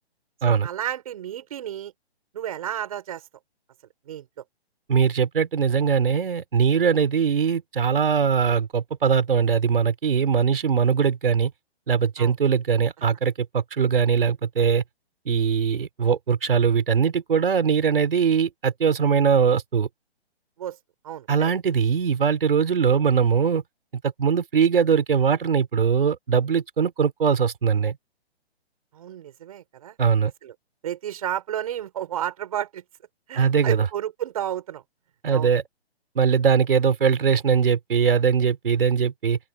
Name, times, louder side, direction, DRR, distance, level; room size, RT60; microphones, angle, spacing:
voice 1, 0.4-1.9 2.3-3.2 4.1-4.3 12.2-12.3 20.6-20.8 21.0-21.5 28.9-30.0 30.4-30.5 30.8-32.8 33.3-34.8 35.3-35.5, right 11 dB, 35° right, 7.3 m, -32 dB
voice 2, 4.9-11.5 11.9-14.8 15.3-19.9 21.3-23.6 24.2-28.0 30.0-30.3 33.3-33.9 35.2-35.6 36.2-39.4, right 6 dB, 60° right, 6.0 m, -21 dB
open air
hypercardioid pair, 175°, 33 cm